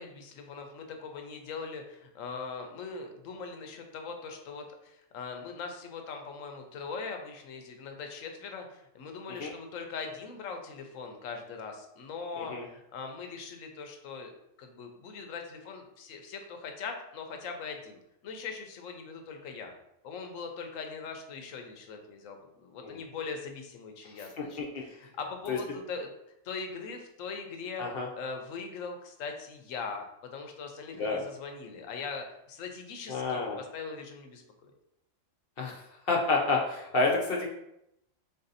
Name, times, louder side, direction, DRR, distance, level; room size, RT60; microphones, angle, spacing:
voice 1, 0.0-14.3 14.6-19.7 20.0-26.1 26.4-34.7, left 5 dB, 80° left, 4 dB, 1.1 m, -41 dB
voice 2, 33.1-33.6 35.6-35.8 36.1-37.5, left 3 dB, 55° left, 0 dB, 0.8 m, -29 dB
3.9 x 2.7 x 3.9 m, 0.82 s
omnidirectional pair, 1.3 m